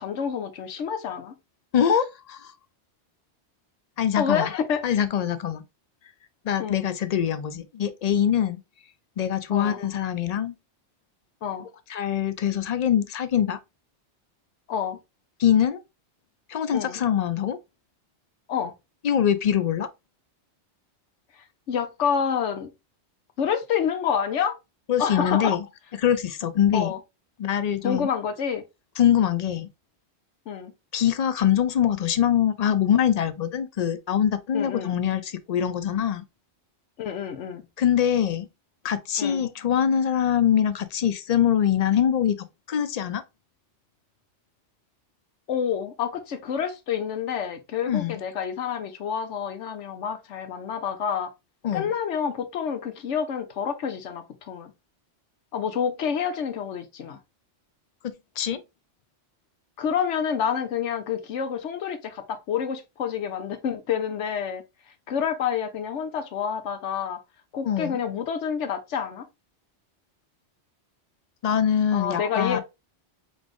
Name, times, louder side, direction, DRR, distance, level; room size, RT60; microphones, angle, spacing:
voice 1, 0.0-1.3 4.2-4.8 6.6-6.8 9.5-9.8 11.4-11.7 14.7-15.0 16.7-17.0 18.5-18.7 21.7-22.7 23.4-24.6 25.0-25.5 26.7-27.0 27.8-28.6 30.5-30.7 34.5-35.0 37.0-37.6 39.2-39.4 45.5-51.3 51.7-54.7 55.5-57.2 59.8-64.6 65.1-67.2 67.5-69.3 71.9-72.6, left 7 dB, 80° left, 1.1 m, -28 dB
voice 2, 1.7-2.5 4.0-4.5 4.8-5.6 6.4-8.6 9.2-10.5 11.9-13.6 15.4-15.8 16.5-17.6 19.0-19.9 24.9-25.7 25.9-26.9 27.4-28.1 29.0-29.7 30.9-36.2 37.8-38.5 38.8-42.4 42.7-43.2 47.9-48.2 51.6-51.9 58.4-58.6 67.6-68.0 71.4-72.6, left 9 dB, 65° left, 0.4 m, -23 dB
4.0 x 3.4 x 3.0 m
omnidirectional pair, 1.2 m